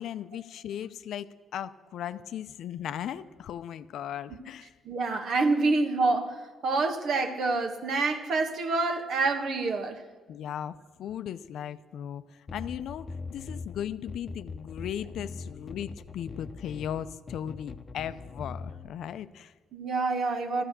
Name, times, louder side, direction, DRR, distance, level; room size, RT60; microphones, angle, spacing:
voice 1, 0.0-4.7 10.3-12.2 12.5-19.5, left 10 dB, 75° left, 0.5 m, -37 dB
voice 2, 4.8-10.0 19.7-20.6, right 3 dB, 65° right, 1.4 m, -27 dB
sound 1, 12.5-18.9, left 4 dB, 35° left, 0.8 m, -41 dB
13.5 x 12.5 x 6.7 m
cardioid pair, 90°, 0 cm